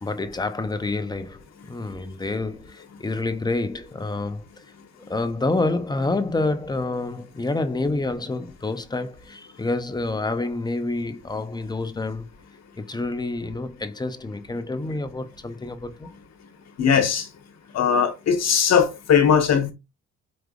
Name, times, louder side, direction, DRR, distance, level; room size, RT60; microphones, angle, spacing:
voice 1, 0.0-4.6 5.1-12.3 12.8-16.1, left 2 dB, 15° left, 0.5 m, -28 dB
voice 2, 16.8-17.3 17.7-19.7, left 7 dB, 60° left, 1.1 m, -19 dB
4.8 x 3.2 x 2.3 m
cardioid pair, 90°, 30 cm